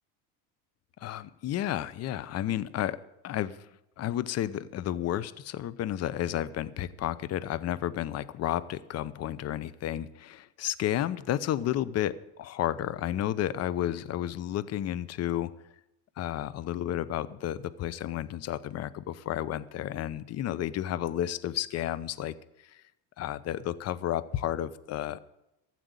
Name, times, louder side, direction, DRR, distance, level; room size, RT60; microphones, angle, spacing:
voice 1, 1.0-3.0 3.2-3.6 4.0-15.5 16.2-22.3 22.6-22.8 23.2-25.2, left 12 dB, 40° left, 18 dB, 0.7 m, -32 dB
13.5 x 7.7 x 8.3 m, 0.88 s
supercardioid pair, 115°, 41 cm